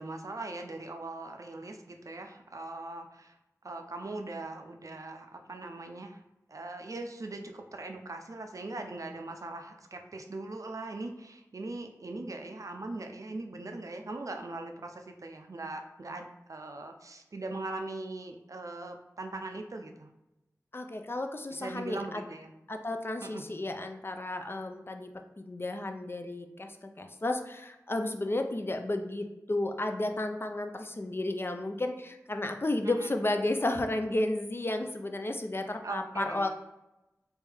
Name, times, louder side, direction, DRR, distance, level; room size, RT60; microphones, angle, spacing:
voice 1, 0.0-3.4 3.6-6.2 6.5-20.1 21.6-22.5 23.2-23.4 32.8-33.1 35.8-36.5, right 2 dB, 60° right, 5 dB, 0.4 m, -40 dB
voice 2, 20.7-22.2 22.7-36.5, left 2 dB, 40° left, 6 dB, 0.4 m, -33 dB
3.4 x 2.6 x 3.3 m, 0.92 s
wide cardioid pair, 55°, 6 cm